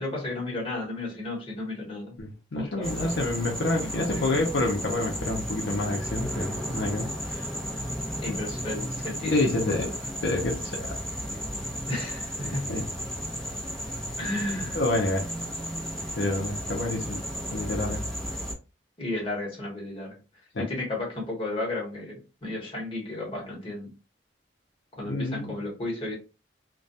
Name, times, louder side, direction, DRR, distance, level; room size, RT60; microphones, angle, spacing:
voice 1, 0.0-2.2 2.5-3.2 3.8-4.3 8.2-9.9 11.9-12.6 14.2-14.8 19.0-20.2 20.6-23.9 25.0-26.1, left 2 dB, 30° left, 1.1 m, -33 dB
voice 2, 2.2-7.5 9.3-9.9 10.2-11.0 12.5-12.8 14.7-15.3 16.2-17.2 17.5-18.0 20.5-20.7 25.0-25.5, left 2 dB, 70° left, 0.6 m, -28 dB
sound 1, 2.8-18.5, equal, 5° left, 0.7 m, -34 dB
2.2 x 2.2 x 2.6 m
head